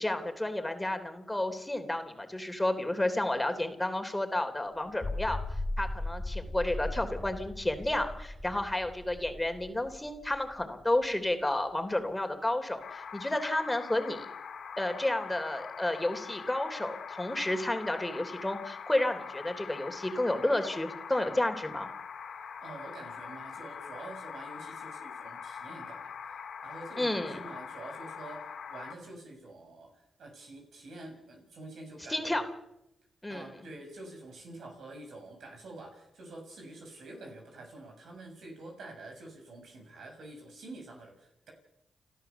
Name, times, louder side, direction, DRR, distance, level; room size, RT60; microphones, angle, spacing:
voice 1, 0.0-5.4 5.8-14.3 14.8-21.9 27.0-27.4 32.1-32.4 33.2-33.5, left 1 dB, 15° left, 7 dB, 3.2 m, -31 dB
sound 1, 4.8-11.3, left 2 dB, 40° left, 1.8 m, -38 dB
sound 2, 12.8-28.9, left 6 dB, 70° left, 2.9 m, -43 dB
voice 2, 22.6-32.4 33.3-41.5, right 2 dB, 75° right, 2 dB, 6.9 m, -47 dB
29.5 x 13.0 x 7.0 m, 0.85 s
supercardioid pair, 50°, 0 cm